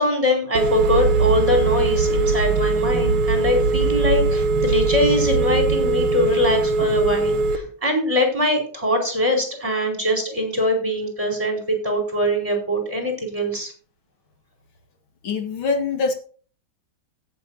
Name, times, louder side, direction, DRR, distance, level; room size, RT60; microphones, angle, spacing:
voice 1, 0.0-13.7, left 1 dB, 15° right, 2 dB, 4.6 m, -22 dB
Telephone, 0.6-7.6, right 3 dB, 90° right, 2.0 m, -20 dB
voice 2, 15.2-16.1, left 4 dB, 75° left, 4 dB, 2.6 m, -23 dB
17.5 x 7.7 x 2.8 m, 0.41 s
omnidirectional pair, 2.3 m